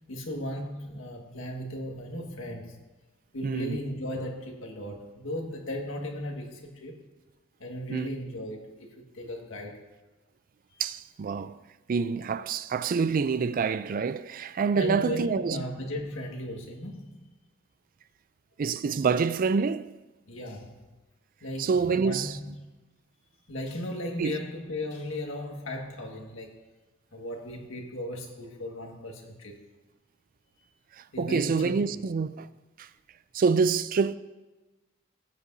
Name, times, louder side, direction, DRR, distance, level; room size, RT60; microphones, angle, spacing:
voice 1, 0.0-2.8 3.3-7.0 7.6-9.8 10.7-10.8 14.7-17.3 20.3-20.9 21.4-22.5 23.5-26.5 27.1-29.6 31.1-32.0, left 1 dB, 75° left, 1.7 m, -36 dB
voice 2, 3.4-3.8 7.9-8.1 10.8-11.6 11.9-15.6 18.6-19.9 21.6-22.4 24.2-24.4 31.2-32.5 32.8-32.9 33.3-34.2, right 5 dB, 45° right, 0.3 m, -26 dB
17.0 x 8.2 x 2.7 m
head